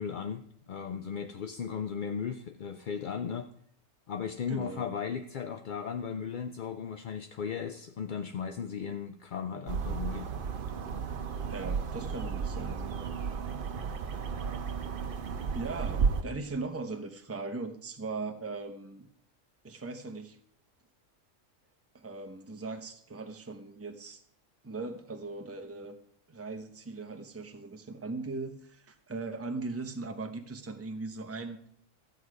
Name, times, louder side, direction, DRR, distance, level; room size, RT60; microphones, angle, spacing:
voice 1, 0.0-3.5 4.1-10.3 13.1-13.3, left 7 dB, 55° left, 8 dB, 0.5 m, -36 dB
voice 2, 4.5-4.9 11.5-13.1 15.5-19.1 19.6-20.4 21.9-24.2 24.6-26.0 26.3-31.6, right 3 dB, 15° right, 6 dB, 0.7 m, -39 dB
sound 1, 9.7-16.2, right 6 dB, 50° right, 0.9 m, -33 dB
13.0 x 7.9 x 4.8 m, 0.66 s
omnidirectional pair, 1.3 m